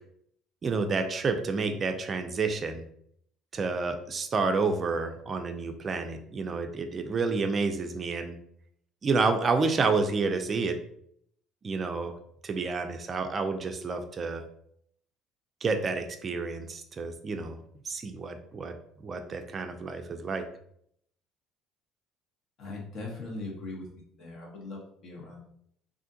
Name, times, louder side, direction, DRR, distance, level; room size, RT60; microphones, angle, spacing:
voice 1, 0.6-2.8 3.5-8.3 9.0-10.8 11.6-12.1 12.4-14.4 15.6-17.6 17.8-18.7 19.0-20.4, right 4 dB, 35° right, 6 dB, 0.3 m, -29 dB
voice 2, 22.6-23.9 24.2-25.4, left 2 dB, 50° left, 0 dB, 1.0 m, -40 dB
3.5 x 2.5 x 2.7 m, 0.68 s
cardioid pair, 115°, 0 cm